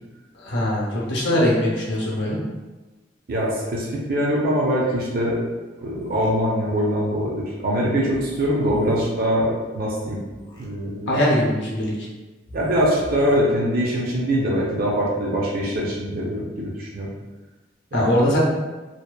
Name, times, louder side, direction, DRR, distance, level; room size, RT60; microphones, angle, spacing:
voice 1, 0.3-2.4 11.1-12.1 17.9-18.4, left 1 dB, 65° left, -4 dB, 0.6 m, -21 dB
voice 2, 3.3-5.4 5.8-10.2 10.6-11.1 12.5-17.1 17.9-18.0, equal, 50° right, -3 dB, 0.5 m, -23 dB
sound 1, 5.9-6.3 8.1-9.0 10.3-10.7 12.4-13.4, equal, 25° left, 0.4 m, -40 dB
2.7 x 2.1 x 2.2 m, 1.2 s
head